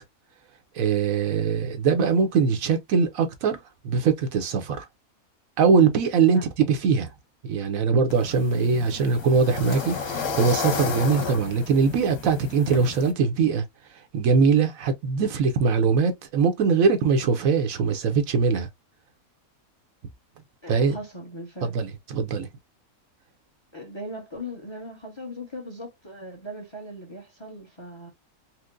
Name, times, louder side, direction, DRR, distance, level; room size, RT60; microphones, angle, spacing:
voice 1, 0.7-3.6 3.8-4.8 5.6-7.1 7.4-13.6 14.1-18.7 20.7-20.9 21.7-22.5, right 5 dB, 75° right, 1.1 m, -22 dB
sound 1, 8.1-13.1, left 5 dB, 90° left, 1.5 m, -32 dB
voice 2, 20.6-21.7 23.7-28.1, equal, 25° left, 0.8 m, -39 dB
4.4 x 2.1 x 2.4 m
omnidirectional pair, 1.5 m